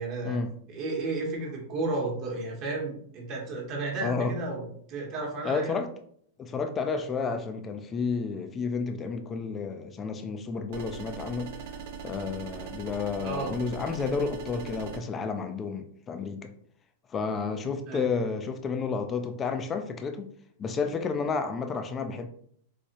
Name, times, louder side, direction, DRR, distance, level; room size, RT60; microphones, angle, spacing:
voice 1, 0.0-0.4 0.7-5.8 13.2-13.5 17.9-18.1, right 2 dB, 40° right, 1.0 m, -33 dB
voice 2, 4.0-4.3 5.4-5.9 6.4-11.6 12.0-16.5 17.1-20.3 20.6-22.3, left 5 dB, 20° left, 0.3 m, -31 dB
sound 1, 10.7-15.0, right 6 dB, 55° right, 0.6 m, -40 dB
4.6 x 2.0 x 2.8 m
supercardioid pair, 145°, 0 cm